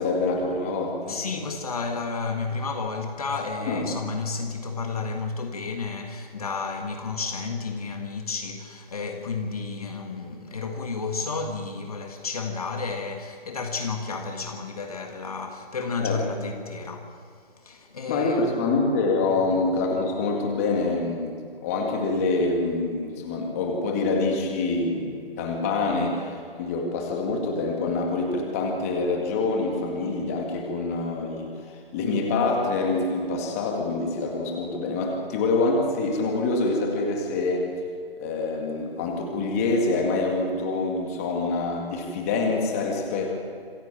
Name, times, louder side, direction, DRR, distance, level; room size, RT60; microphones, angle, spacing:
voice 1, 0.0-1.2 3.6-3.9 16.0-16.2 18.1-37.7 38.2-43.4, left 3 dB, 15° left, 2.0 m, -26 dB
voice 2, 1.1-17.2 17.6-18.8 19.5-19.6, left 4 dB, 40° left, 1.8 m, -32 dB
27.0 x 16.0 x 7.5 m
figure-of-eight pair, 160°, 30 cm